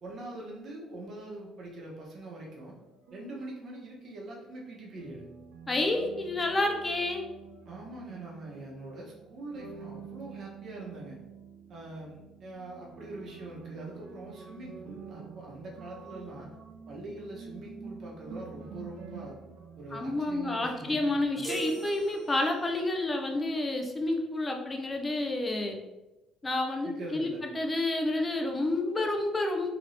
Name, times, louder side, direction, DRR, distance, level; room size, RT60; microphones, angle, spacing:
voice 1, 0.0-2.8 3.1-5.3 7.6-11.2 11.7-16.5 16.9-19.4 19.8-21.4 26.8-27.4, right 2 dB, 50° right, -2 dB, 1.0 m, -43 dB
sound 1, 2.5-3.9 5.0-21.2, right 5 dB, 90° right, 0.5 m, -48 dB
voice 2, 5.7-7.2 19.9-25.8 26.4-29.7, left 2 dB, 20° left, 3 dB, 0.5 m, -29 dB
sound 2, 21.4-22.8, right 7 dB, 10° right, 0.8 m, -40 dB
2.9 x 2.7 x 3.1 m, 1.0 s
cardioid pair, 110°, 0 cm